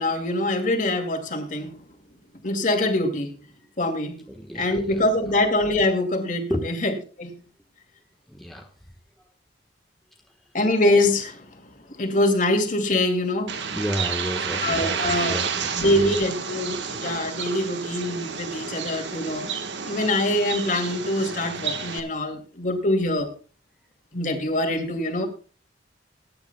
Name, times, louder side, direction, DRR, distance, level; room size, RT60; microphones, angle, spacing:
voice 1, 0.0-1.8 2.4-3.3 3.8-4.2 4.5-6.9 7.2-7.3 10.5-11.5 12.0-13.6 14.6-15.3 15.8-19.5 19.8-23.3 24.1-25.3, left 1 dB, 45° left, 5 dB, 2.4 m, -24 dB
voice 2, 4.3-5.0 6.5-6.7 8.3-8.7 13.7-16.2, equal, ahead, 1 dB, 1.2 m, -31 dB
Bird, 13.5-22.0, right 6 dB, 70° right, 1.4 m, -30 dB
20.5 x 10.5 x 2.3 m, 0.38 s
head